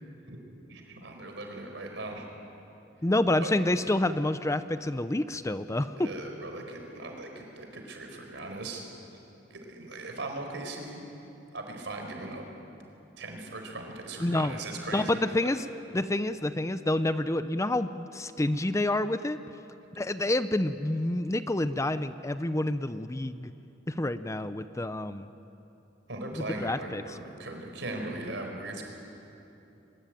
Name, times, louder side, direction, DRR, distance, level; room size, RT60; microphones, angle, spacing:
voice 1, 0.2-2.2 3.4-3.5 6.0-8.9 9.5-11.0 11.5-12.4 13.2-15.5 26.1-28.8, right 2 dB, 75° right, 3 dB, 4.6 m, -39 dB
voice 2, 3.0-6.1 14.2-14.6 14.9-15.6 15.9-19.4 20.0-23.5 23.9-25.3 26.4-27.0, left 1 dB, 15° left, 12 dB, 0.6 m, -28 dB
23.0 x 22.0 x 9.2 m, 2.9 s
head